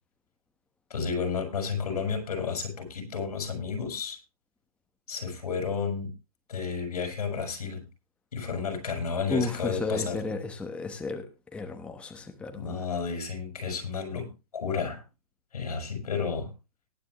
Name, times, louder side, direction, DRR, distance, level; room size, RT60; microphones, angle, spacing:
voice 1, 0.9-4.2 5.1-6.1 6.5-7.8 8.3-10.2 12.6-14.3 14.5-15.0 15.5-16.5, left 5 dB, 90° left, 7 dB, 5.2 m, -31 dB
voice 2, 9.3-11.3 11.5-12.8, left 3 dB, 5° left, 5 dB, 1.1 m, -33 dB
19.0 x 9.0 x 3.0 m, 0.27 s
hypercardioid pair, 155°, 19 cm